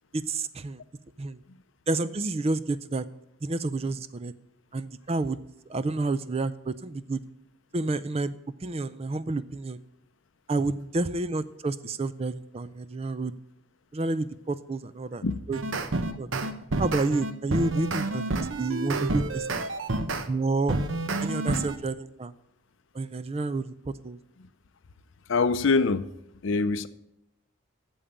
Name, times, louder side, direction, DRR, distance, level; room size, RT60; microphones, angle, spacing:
voice 1, 0.1-0.8 1.2-1.4 1.9-3.1 3.4-4.3 4.7-5.4 5.7-7.2 7.7-8.3 8.6-9.8 10.5-13.3 13.9-15.6 16.2-16.3 16.8-19.6 20.3-20.8 21.2-22.3 22.9-23.7 24.0-24.2, right 3 dB, 30° right, 15 dB, 0.4 m, -29 dB
sound 1, 15.3-20.3 20.7-21.8, right 2 dB, 60° right, 0.8 m, -29 dB
voice 2, 25.3-26.1 26.4-26.9, left 4 dB, 60° left, 14 dB, 0.5 m, -24 dB
8.8 x 7.2 x 8.7 m, 0.82 s
head